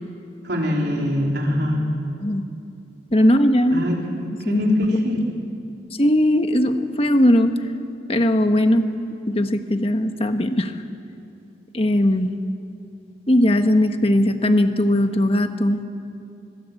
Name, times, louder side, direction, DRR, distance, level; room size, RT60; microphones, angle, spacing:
voice 1, 0.4-1.9 3.7-4.0 4.4-5.2, left 1 dB, 60° right, -1 dB, 3.9 m, -22 dB
voice 2, 3.1-3.8 4.4-4.6 6.0-7.5 8.1-8.8 9.3-10.7 11.7-12.3 13.3-15.8, left 1 dB, 30° left, 7 dB, 1.4 m, -18 dB
25.0 x 21.5 x 8.5 m, 2.6 s
head